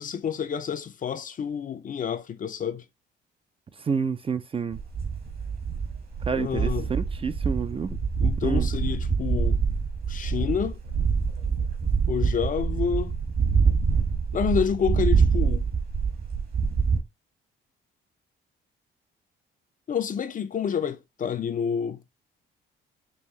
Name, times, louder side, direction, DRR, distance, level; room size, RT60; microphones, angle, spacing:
voice 1, 0.0-2.8 6.3-6.9 8.2-9.6 10.1-10.8 12.1-13.2 14.3-15.6 19.9-22.0, left 7 dB, 40° left, 0.5 m, -28 dB
voice 2, 3.8-4.8 6.3-8.0 8.4-8.7, right 6 dB, 30° right, 0.5 m, -29 dB
sound 1, 4.7-17.0, right 5 dB, 50° right, 1.6 m, -25 dB
5.4 x 2.6 x 3.1 m
cardioid pair, 90°, 20 cm